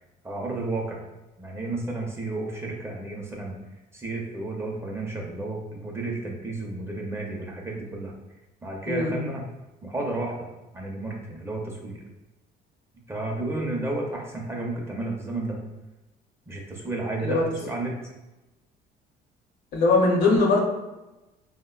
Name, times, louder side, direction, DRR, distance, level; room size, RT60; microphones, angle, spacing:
voice 1, 0.2-1.1 1.4-3.6 3.9-8.1 8.6-9.4 9.8-10.5 10.7-12.0 13.1-15.6 16.5-18.0, right 2 dB, 15° right, -1 dB, 0.5 m, -32 dB
voice 2, 19.7-20.6, left 3 dB, 75° left, -1 dB, 0.7 m, -20 dB
3.4 x 2.1 x 2.3 m, 1.0 s
cardioid pair, 110°, 17 cm